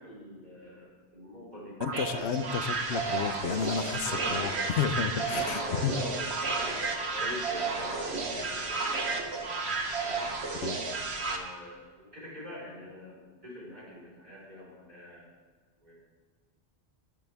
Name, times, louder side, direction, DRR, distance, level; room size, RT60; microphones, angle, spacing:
voice 1, 0.0-1.8 2.1-2.3 4.0-4.4 5.0-6.8 7.1-9.5 10.0-10.3 11.1-15.3 15.8-15.9, left 1 dB, 40° right, -6 dB, 5.2 m, -43 dB
voice 2, 1.8-6.0 10.6-10.8, left 7 dB, 85° left, 10 dB, 1.0 m, -31 dB
sound 1, 1.8-11.4, right 4 dB, 75° right, 1.5 m, -32 dB
20.5 x 9.7 x 3.6 m, 1.4 s
omnidirectional pair, 1.1 m